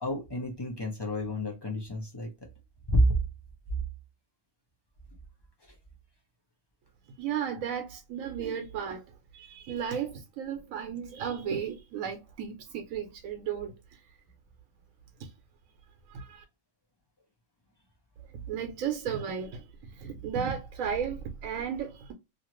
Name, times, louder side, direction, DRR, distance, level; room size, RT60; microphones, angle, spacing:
voice 1, 0.0-2.3 2.9-3.1, equal, 25° left, 0.6 m, -28 dB
voice 2, 7.2-9.0 9.3-13.7 15.2-15.3 16.1-16.4 18.5-19.7 19.9-22.1, right 7 dB, 90° right, 1.1 m, -34 dB
2.8 x 2.5 x 2.9 m
omnidirectional pair, 1.4 m